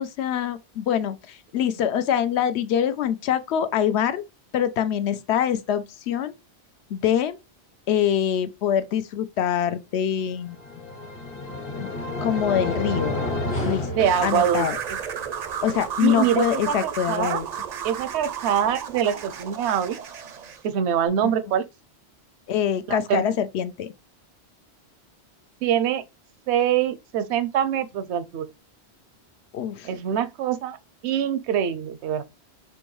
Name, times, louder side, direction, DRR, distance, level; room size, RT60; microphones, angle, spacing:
voice 1, 0.0-4.2 4.5-6.3 6.9-7.4 7.9-10.6 11.8-11.9 12.2-13.2 13.6-14.8 15.6-17.5 21.2-21.3 22.5-23.9 29.5-29.9, left 9 dB, 80° left, 0.8 m, -24 dB
sound 1, 10.4-14.8, left 1 dB, 60° left, 1.3 m, -30 dB
sound 2, 14.0-20.7, right 7 dB, 55° right, 0.5 m, -33 dB
voice 2, 14.0-15.0 16.0-17.4 17.8-20.0 20.6-21.6 22.9-23.2 25.6-26.0 26.5-28.5 29.8-30.8 31.0-32.2, right 9 dB, 80° right, 0.8 m, -24 dB
4.6 x 2.6 x 3.1 m
omnidirectional pair, 1.1 m